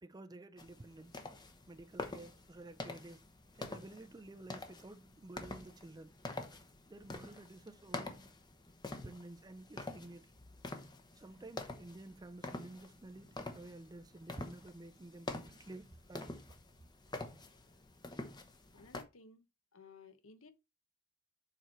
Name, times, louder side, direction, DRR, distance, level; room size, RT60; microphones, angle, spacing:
voice 1, 0.0-1.2 1.7-3.2 3.5-6.1 6.9-8.3 8.9-10.3 11.2-16.3, right 2 dB, 20° right, 0.4 m, -52 dB
sound 1, 0.6-19.0, left 2 dB, 20° left, 0.8 m, -47 dB
voice 2, 18.7-19.5 19.7-20.5, left 4 dB, 70° left, 1.0 m, -57 dB
7.0 x 4.5 x 4.4 m
head